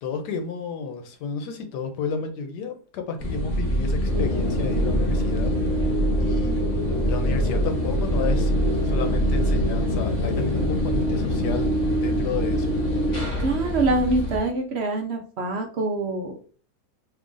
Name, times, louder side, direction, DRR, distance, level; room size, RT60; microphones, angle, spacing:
voice 1, 0.0-5.9 6.2-6.6 7.0-8.5 8.8-11.7 12.0-12.8, left 5 dB, 85° left, 6 dB, 1.2 m, -32 dB
sound 1, 3.2-14.4, equal, 30° left, 1.0 m, -25 dB
sound 2, 4.1-13.2, equal, 55° left, 1.1 m, -27 dB
voice 2, 13.4-16.3, right 2 dB, 65° right, 3 dB, 0.6 m, -25 dB
3.1 x 2.4 x 3.7 m, 0.40 s
omnidirectional pair, 1.8 m